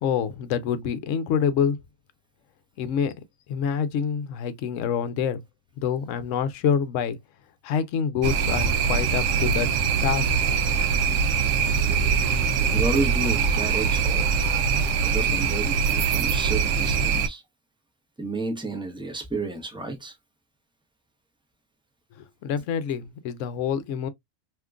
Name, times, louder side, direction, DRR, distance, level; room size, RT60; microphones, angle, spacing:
voice 1, 0.0-1.8 2.8-3.1 3.5-5.4 5.8-7.2 7.6-9.7 10.0-10.3 22.4-24.1, left 7 dB, 70° left, 0.9 m, -26 dB
sound 1, 8.2-17.3, right 6 dB, 70° right, 0.9 m, -23 dB
voice 2, 12.6-14.3 15.0-17.4 18.2-20.1, right 3 dB, 5° right, 0.6 m, -31 dB
3.6 x 2.8 x 2.3 m
omnidirectional pair, 1.4 m